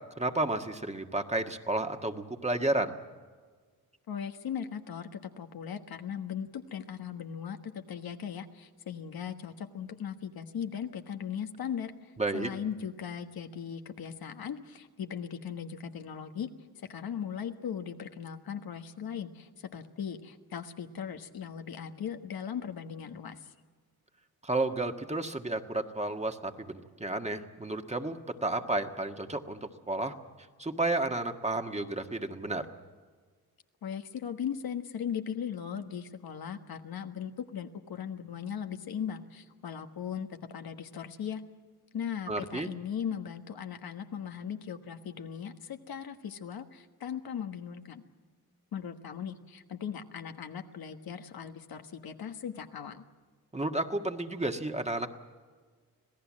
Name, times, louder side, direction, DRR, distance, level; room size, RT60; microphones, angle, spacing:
voice 1, 0.2-2.9 12.2-12.5 24.4-30.1 30.6-32.6 42.3-42.7 53.5-55.1, right 2 dB, 20° right, 5 dB, 1.7 m, -32 dB
voice 2, 4.1-16.5 16.8-23.5 33.8-41.4 41.9-48.0 48.7-53.1, left 8 dB, 70° left, 6 dB, 1.5 m, -38 dB
26.0 x 17.0 x 7.5 m, 1.5 s
cardioid pair, 75°, 37 cm